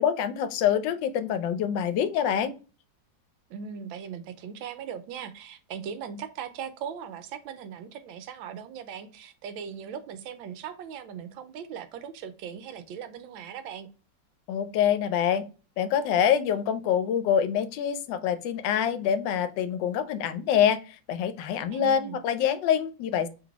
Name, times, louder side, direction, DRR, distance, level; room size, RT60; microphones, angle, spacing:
voice 1, 0.0-2.6 14.5-15.4 15.8-23.3, left 9 dB, 75° left, 1.2 m, -25 dB
voice 2, 3.5-13.9 21.7-22.2, right 7 dB, 85° right, 1.4 m, -39 dB
3.9 x 3.4 x 3.5 m
omnidirectional pair, 2.1 m